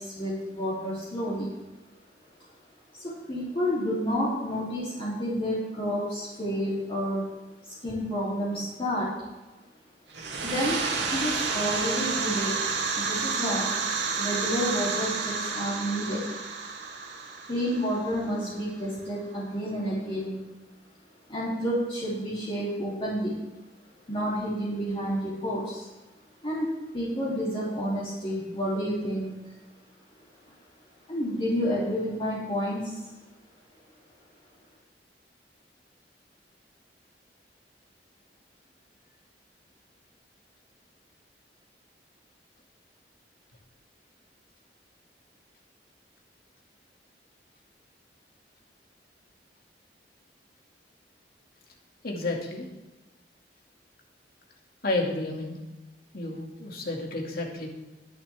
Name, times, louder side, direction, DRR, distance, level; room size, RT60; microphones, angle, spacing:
voice 1, 0.0-1.5 2.9-7.3 7.7-9.1 10.4-10.8 11.1-12.5 12.9-13.7 14.2-16.2 17.5-20.4 21.3-23.3 24.1-25.9 26.4-29.3 31.1-32.9, equal, 30° left, -7 dB, 2.9 m, -30 dB
sound 1, 10.1-18.7, right 4 dB, 75° right, 2.2 m, -30 dB
voice 2, 52.0-52.7 54.8-55.6 56.1-57.7, left 2 dB, 55° left, 0 dB, 2.2 m, -31 dB
21.5 x 7.2 x 3.5 m, 1.1 s
head